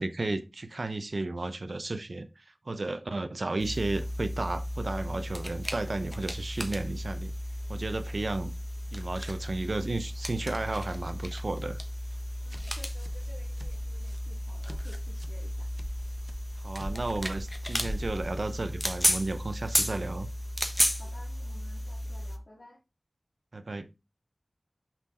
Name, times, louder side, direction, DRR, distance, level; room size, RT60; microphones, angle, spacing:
voice 1, 0.0-7.3 7.7-8.5 8.9-11.8 16.6-20.3 23.5-23.9, right 2 dB, 80° right, 0.7 m, -33 dB
sound 1, 3.6-22.4, equal, 5° left, 1.3 m, -34 dB
sound 2, 12.0-18.9, equal, 25° right, 0.4 m, -44 dB
voice 2, 12.4-15.7 21.0-22.8, left 1 dB, 80° left, 2.3 m, -54 dB
6.1 x 5.9 x 3.7 m
wide cardioid pair, 45°, 0 cm